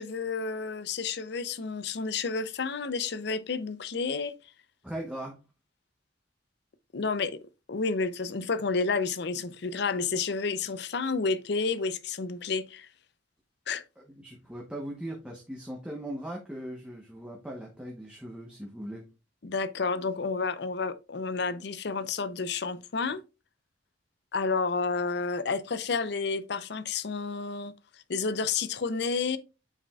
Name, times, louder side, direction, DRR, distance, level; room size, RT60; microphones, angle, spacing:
voice 1, 0.0-4.3 6.9-7.4 7.7-12.9 13.7-13.8 19.4-23.2 24.3-27.7 28.1-29.4, left 4 dB, 65° left, 0.6 m, -30 dB
voice 2, 4.8-5.4 14.2-19.0, right 1 dB, 5° right, 1.0 m, -39 dB
8.7 x 5.0 x 2.3 m
head